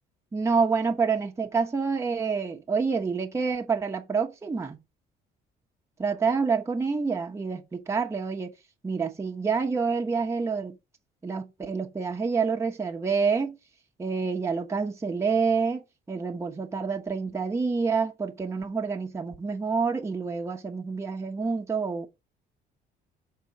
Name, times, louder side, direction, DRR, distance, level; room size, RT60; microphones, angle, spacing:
voice 1, 0.3-4.8 6.0-8.5 8.8-10.8 11.2-13.6 14.0-22.1, right 5 dB, 15° right, 1.0 m, -27 dB
5.2 x 3.8 x 5.6 m
cardioid pair, 110°, 17 cm